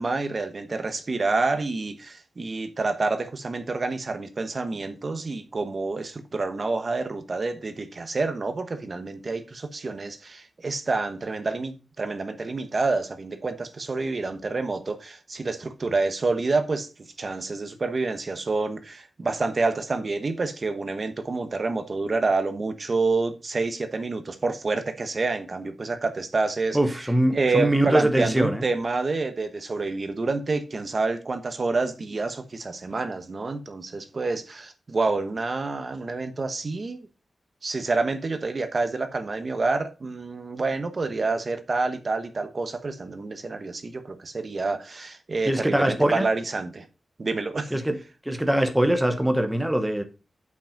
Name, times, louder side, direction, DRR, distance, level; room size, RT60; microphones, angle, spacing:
voice 1, 0.0-16.9 17.2-26.8 27.3-37.1 37.6-46.8 47.2-47.8, right 3 dB, 40° right, 1.0 m, -28 dB
voice 2, 26.7-28.6 45.4-46.3 47.7-48.0 48.2-50.0, right 1 dB, 5° right, 1.0 m, -22 dB
8.0 x 5.9 x 5.1 m
wide cardioid pair, 145°, 0 cm